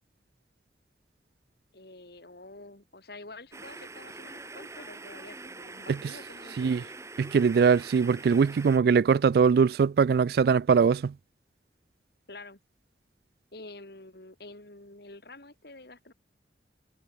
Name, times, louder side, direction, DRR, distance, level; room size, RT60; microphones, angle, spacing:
voice 1, 1.7-6.9 12.3-12.6 13.5-16.1, left 2 dB, 60° left, 3.0 m, -48 dB
sound 1, 3.5-8.8, right 3 dB, 15° right, 0.8 m, -44 dB
voice 2, 7.2-11.1, right 6 dB, 55° right, 0.3 m, -22 dB
head